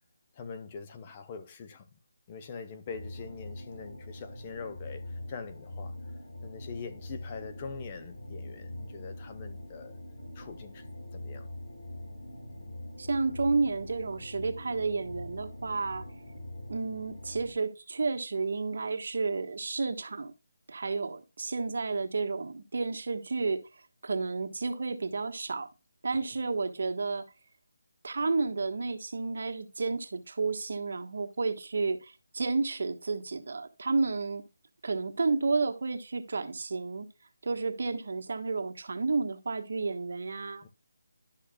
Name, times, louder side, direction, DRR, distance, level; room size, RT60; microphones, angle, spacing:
voice 1, 0.3-1.9 2.3-5.9 6.4-10.0 10.3-11.5 40.6-40.7, left 5 dB, 25° left, 0.8 m, -43 dB
sound 1, 2.9-17.5, left 1 dB, 80° left, 3.8 m, -43 dB
voice 2, 13.0-16.0 16.7-20.3 20.7-23.6 24.0-25.7 26.0-27.2 28.0-34.5 34.8-37.1 37.4-40.7, right 4 dB, 60° right, 1.2 m, -31 dB
11.5 x 6.4 x 2.3 m
figure-of-eight pair, 165°, 0 cm